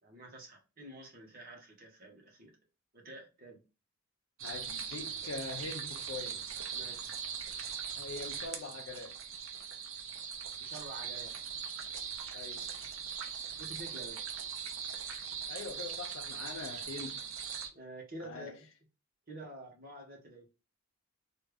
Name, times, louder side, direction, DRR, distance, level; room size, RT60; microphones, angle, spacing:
voice 1, 0.0-2.5 2.9-3.6 6.7-7.1 10.6-11.3 13.6-14.3 17.7-18.6 19.3-20.5, right 2 dB, 45° right, 1.2 m, -48 dB
voice 2, 4.4-6.4 8.0-9.2 12.3-12.7 15.5-17.2 18.2-18.6, left 4 dB, 70° left, 0.4 m, -43 dB
sound 1, 4.4-17.7, right 7 dB, 75° right, 0.6 m, -40 dB
3.1 x 2.4 x 3.4 m
head